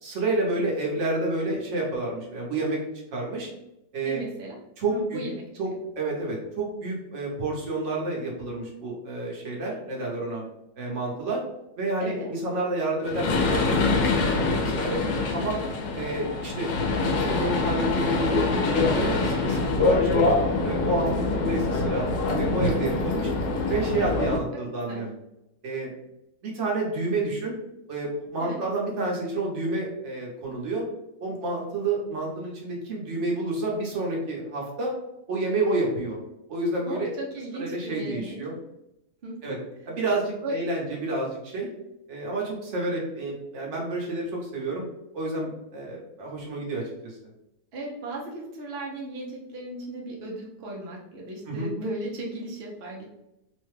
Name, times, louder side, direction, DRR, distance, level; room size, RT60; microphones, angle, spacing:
voice 1, 0.0-2.8 3.1-3.5 3.9-4.2 4.8-5.2 5.6-5.7 6.0-10.4 10.8-11.4 11.8-15.0 15.3-15.6 15.9-16.7 17.0-20.3 20.6-21.1 21.3-22.1 22.4-23.3 23.7-25.1 25.6-25.9 26.4-27.6 27.9-30.8 31.2-34.9 35.3-36.2 36.5-37.1 37.6-38.5 39.4-39.6 39.9-41.7 42.1-44.9 45.1-47.2 51.5-51.7, right 2 dB, 50° right, -2 dB, 1.0 m, -29 dB
voice 2, 4.0-4.6 4.9-5.4 12.0-12.3 15.7-15.8 24.5-24.6 24.9-25.0 28.4-28.6 36.9-38.4 39.2-39.6 40.4-40.6 47.7-53.0, right 1 dB, 70° right, -2 dB, 0.5 m, -36 dB
sound 1, 13.0-24.4, left 3 dB, 90° left, 1.3 m, -25 dB
3.2 x 2.2 x 3.1 m, 0.87 s
omnidirectional pair, 1.9 m